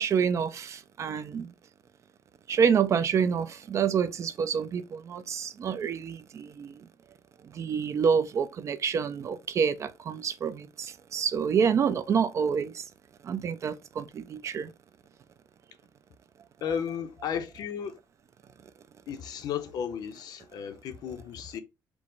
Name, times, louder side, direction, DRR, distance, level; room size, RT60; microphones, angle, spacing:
voice 1, 0.0-1.5 2.5-6.7 7.5-12.8 13.2-14.7, right 7 dB, 45° right, 0.4 m, -27 dB
voice 2, 16.6-18.0 19.1-21.6, left 8 dB, 65° left, 0.7 m, -34 dB
4.6 x 2.1 x 3.8 m
cardioid pair, 130°, 7 cm